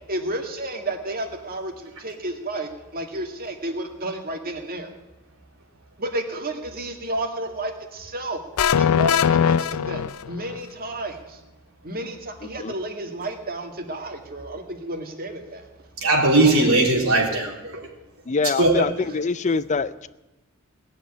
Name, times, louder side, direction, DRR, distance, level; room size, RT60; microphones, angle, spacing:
voice 1, 0.1-1.7 2.0-4.9 6.0-8.4 8.8-10.0 10.3-11.2 11.8-15.6 16.4-16.5, right 1 dB, 45° right, 4 dB, 2.0 m, -31 dB
sound 1, 8.6-10.6, left 7 dB, 90° left, 0.4 m, -20 dB
voice 2, 16.0-17.9 18.6-18.7, right 2 dB, 85° right, -1 dB, 3.5 m, -19 dB
voice 3, 18.3-20.1, left 4 dB, 35° left, 15 dB, 0.5 m, -24 dB
18.5 x 7.4 x 9.9 m, 1.0 s
head